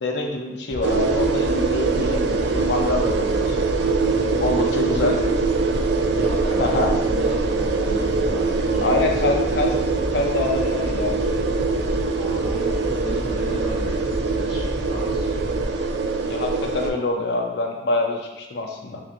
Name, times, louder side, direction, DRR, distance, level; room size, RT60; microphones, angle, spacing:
voice 1, 0.0-3.7 4.4-5.2 6.6-6.9 8.8-9.7 10.1-11.3 16.3-19.0, left 2 dB, 70° left, 2 dB, 0.5 m, -25 dB
sound 1, 0.7-15.6, equal, 30° right, 0.6 m, -32 dB
sound 2, 0.8-16.9, right 4 dB, 75° right, 0.3 m, -23 dB
voice 2, 4.6-5.2 6.1-9.4 12.1-15.5, equal, 25° left, -12 dB, 0.9 m, -35 dB
4.7 x 2.7 x 2.5 m, 1.0 s
head